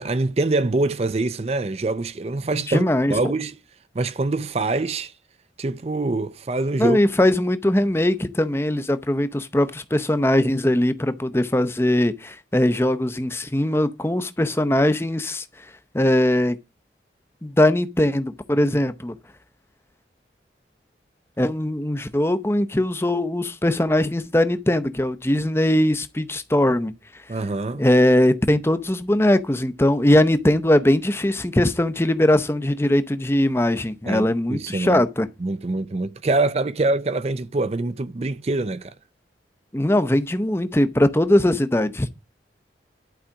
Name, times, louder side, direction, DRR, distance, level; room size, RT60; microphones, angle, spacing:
voice 1, 0.0-3.5 3.9-5.1 5.6-7.0 27.3-27.8 34.0-35.0 35.4-38.9, right 2 dB, 35° right, 0.5 m, -24 dB
voice 2, 2.7-3.1 6.8-15.7 15.9-16.6 17.4-19.2 21.4-26.9 27.7-35.3 39.7-42.1, left 1 dB, 15° left, 0.7 m, -20 dB
11.5 x 4.9 x 7.0 m
head